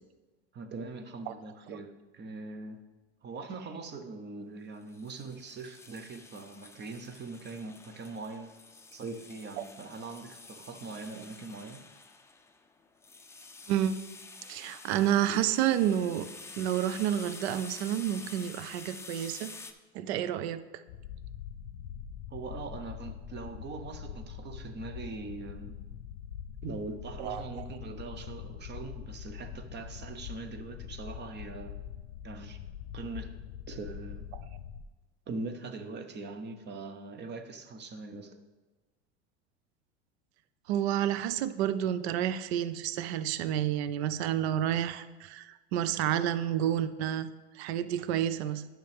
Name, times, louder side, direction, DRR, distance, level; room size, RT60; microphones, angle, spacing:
voice 1, 0.5-2.8 3.2-8.5 8.9-11.8 14.4-14.5 22.3-25.8 26.6-31.8 32.2-32.6 32.9-33.3 33.7-34.3 35.3-38.4, right 3 dB, 30° right, 8 dB, 0.9 m, -42 dB
sound 1, 4.9-19.7, left 3 dB, 10° left, 0.5 m, -49 dB
voice 2, 13.7-14.0 14.5-16.3 16.6-19.5 19.9-20.8 27.2-27.6 40.7-48.7, right 10 dB, 75° right, 14 dB, 0.5 m, -30 dB
sound 2, 20.9-34.8, left 9 dB, 80° left, 0.6 m, -43 dB
9.5 x 6.0 x 3.5 m, 1.2 s
hypercardioid pair, 100°, 33 cm